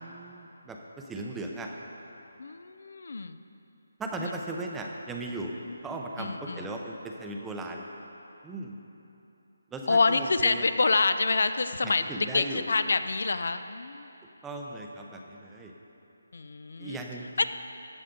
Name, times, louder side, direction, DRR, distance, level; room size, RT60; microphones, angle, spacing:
voice 1, 0.0-1.7 4.0-5.5 5.8-7.9 8.4-8.8 9.7-10.6 11.8-12.7 14.4-15.7 16.8-17.4, right 2 dB, 5° right, 1 dB, 0.6 m, -37 dB
voice 2, 2.4-3.4 4.2-4.3 6.2-6.7 9.9-14.1 16.3-17.0 17.4-17.5, left 3 dB, 70° left, 10 dB, 0.4 m, -27 dB
14.0 x 8.1 x 3.9 m, 2.9 s
hypercardioid pair, 165°, 0 cm